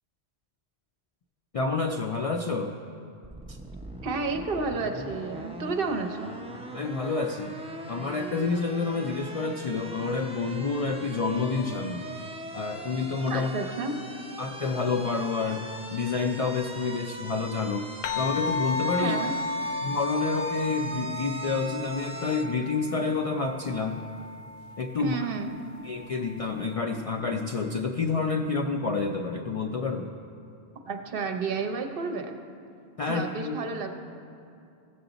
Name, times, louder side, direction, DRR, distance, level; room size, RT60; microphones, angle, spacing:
voice 1, 1.5-2.7 3.5-3.6 6.7-7.6 7.9-12.1 12.5-13.5 14.4-19.2 19.8-24.0 24.8-25.2 25.8-30.1 33.0-33.7, left 4 dB, 60° left, 3 dB, 0.4 m, -29 dB
sound 1, 3.2-22.5, right 1 dB, 10° right, 0.4 m, -41 dB
voice 2, 4.0-6.3 13.3-13.9 19.0-19.3 25.0-25.5 30.9-32.4 33.1-33.9, right 4 dB, 65° right, 5 dB, 0.9 m, -31 dB
sound 2, 18.0-26.7, left 2 dB, 90° left, 0.9 m, -34 dB
15.5 x 6.9 x 3.9 m, 2.5 s
omnidirectional pair, 1.1 m